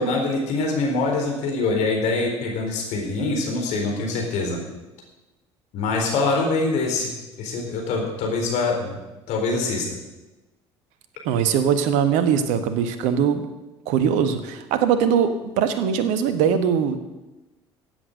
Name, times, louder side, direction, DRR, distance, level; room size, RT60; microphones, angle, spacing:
voice 1, 0.0-4.6 5.7-9.0 9.3-9.9, left 3 dB, 55° left, 0 dB, 3.9 m, -24 dB
voice 2, 11.2-13.5 13.9-17.0, right 7 dB, 60° right, 10 dB, 1.4 m, -21 dB
15.5 x 8.3 x 6.6 m, 1.1 s
figure-of-eight pair, 60°, 14 cm